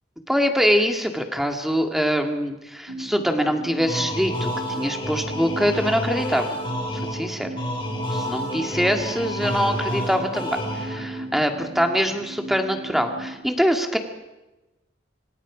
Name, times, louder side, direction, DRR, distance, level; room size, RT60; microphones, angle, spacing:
voice 1, 0.3-4.5 4.8-6.6 6.9-7.5 8.1-14.0, equal, ahead, 4 dB, 1.9 m, -23 dB
sound 1, 2.9-13.4, right 1 dB, 80° right, 6.1 m, -37 dB
sound 2, 3.9-11.3, equal, 25° left, 5.4 m, -30 dB
26.0 x 25.5 x 5.0 m, 1.0 s
head